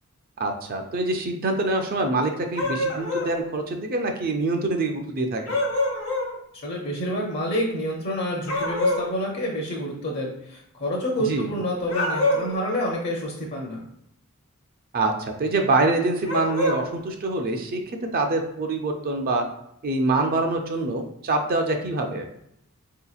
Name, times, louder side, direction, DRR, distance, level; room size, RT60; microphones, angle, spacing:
voice 1, 0.4-5.6 11.2-11.5 14.9-19.4 19.8-22.3, right 2 dB, 40° right, 4 dB, 0.4 m, -25 dB
sound 1, 2.5-3.3 5.5-6.3 8.5-9.1 11.8-12.6 16.2-16.8, left 1 dB, 75° left, 0.9 m, -25 dB
voice 2, 6.6-13.8, equal, 50° left, -1 dB, 0.6 m, -28 dB
4.5 x 2.8 x 2.3 m, 0.77 s
head